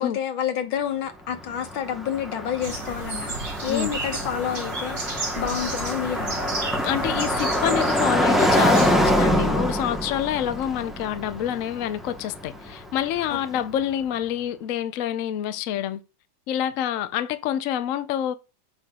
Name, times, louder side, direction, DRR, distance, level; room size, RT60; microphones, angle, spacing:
voice 1, 0.0-6.5 13.3-13.7, left 9 dB, 85° left, 1.9 m, -29 dB
Car passing by, 1.3-13.3, equal, ahead, 0.4 m, -25 dB
sound 1, 2.6-8.9, right 3 dB, 35° right, 2.1 m, -33 dB
voice 2, 6.8-16.0 16.5-18.3, left 10 dB, 65° left, 0.8 m, -27 dB
7.5 x 5.8 x 2.3 m
omnidirectional pair, 2.1 m